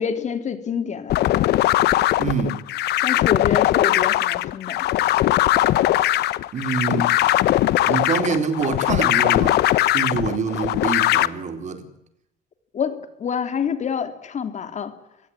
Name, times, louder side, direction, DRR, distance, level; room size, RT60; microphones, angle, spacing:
voice 1, 0.0-1.4 3.0-4.8 12.7-14.9, left 7 dB, 45° left, 3.2 m, -27 dB
sound 1, 1.1-11.3, left 15 dB, 75° left, 1.1 m, -20 dB
voice 2, 2.2-2.6 6.5-7.1 7.9-9.6 9.9-11.9, right 5 dB, 45° right, 4.0 m, -25 dB
28.0 x 17.5 x 9.9 m
cardioid pair, 110°, 17 cm